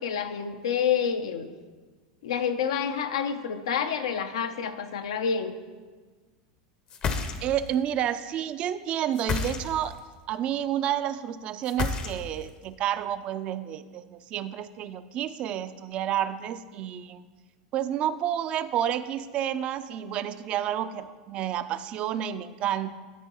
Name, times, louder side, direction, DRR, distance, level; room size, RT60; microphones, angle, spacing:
voice 1, 0.0-1.5 2.2-5.5, left 7 dB, 85° left, 8 dB, 0.6 m, -28 dB
sound 1, 6.9-7.7 9.1-10.0 11.6-12.5, left 5 dB, 35° left, 0.6 m, -30 dB
voice 2, 7.4-9.9 10.3-17.2 17.7-22.9, right 10 dB, 45° right, 13 dB, 0.4 m, -30 dB
12.5 x 4.5 x 3.0 m, 1.4 s
hypercardioid pair, 105°, 3 cm